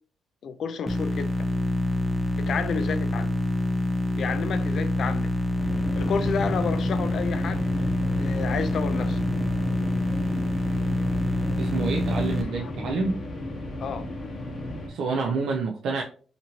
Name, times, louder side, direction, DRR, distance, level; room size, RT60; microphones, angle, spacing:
voice 1, 0.4-1.3 2.4-3.3 4.1-5.3 6.0-7.6 8.2-9.2 12.5-12.7 13.8-14.1, left 6 dB, 60° left, 0.4 m, -30 dB
sound 1, 0.9-12.4, left 1 dB, 5° left, 0.5 m, -26 dB
sound 2, 5.6-14.9, left 1 dB, 40° left, 0.8 m, -35 dB
voice 2, 11.6-13.2 14.9-16.0, right 4 dB, 75° right, 0.4 m, -28 dB
2.8 x 2.5 x 2.7 m
cardioid pair, 90°, 0 cm